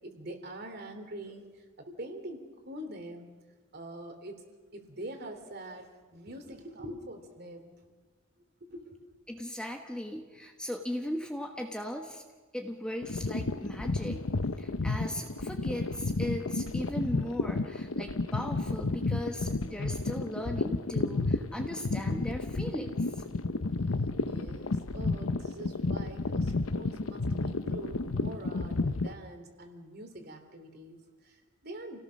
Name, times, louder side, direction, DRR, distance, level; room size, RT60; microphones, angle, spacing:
voice 1, 0.0-3.3 3.7-4.4 4.7-7.9 8.6-9.2 24.2-32.0, right 1 dB, 50° right, 5 dB, 3.1 m, -44 dB
voice 2, 9.3-12.2 12.5-14.3 14.6-23.2, equal, 5° left, 3 dB, 1.3 m, -38 dB
sound 1, 13.0-29.1, left 3 dB, 85° left, 0.9 m, -31 dB
29.0 x 17.5 x 6.4 m, 1.3 s
head